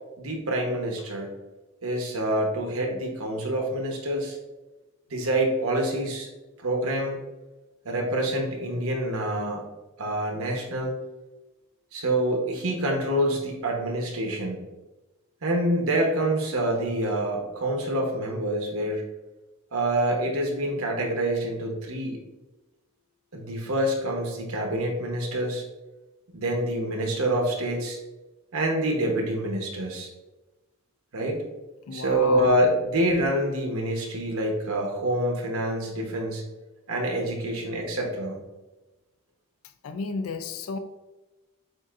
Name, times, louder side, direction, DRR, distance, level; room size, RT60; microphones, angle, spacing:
voice 1, 0.2-1.3 1.8-4.4 5.1-6.3 6.6-7.2 7.8-9.6 10.0-10.9 11.9-14.6 15.4-19.0 19.7-22.2 23.3-25.6 26.3-28.0 28.5-30.1 31.1-31.4 31.9-36.4 36.9-38.4, right 1 dB, 85° right, 1 dB, 1.0 m, -26 dB
voice 2, 31.9-32.6 39.8-40.8, left 4 dB, 80° left, 10 dB, 0.4 m, -32 dB
7.8 x 2.6 x 2.5 m, 1.1 s
head